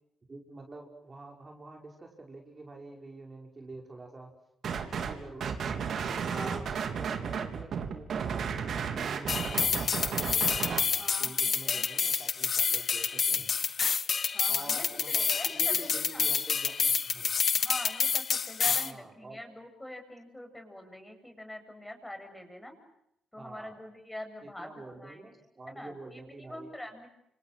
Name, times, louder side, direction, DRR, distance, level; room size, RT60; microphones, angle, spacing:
voice 1, 0.3-4.3 4.8-5.8 6.3-8.1 8.4-10.5 11.2-13.5 14.5-17.3 18.6-19.4 23.4-23.7 24.4-26.7, right 3 dB, 30° right, 1 dB, 5.7 m, -47 dB
sound 1, 4.6-5.1 5.4-10.8, right 6 dB, 60° right, 3.7 m, -33 dB
voice 2, 6.3-6.6 11.0-11.9 14.3-16.3 17.6-22.7 23.3-25.2 25.7-27.1, left 1 dB, 10° left, 5 dB, 7.9 m, -44 dB
sound 2, 9.3-18.9, left 6 dB, 45° left, 1.5 m, -28 dB
29.5 x 28.0 x 6.4 m, 0.80 s
cardioid pair, 90°, 0 cm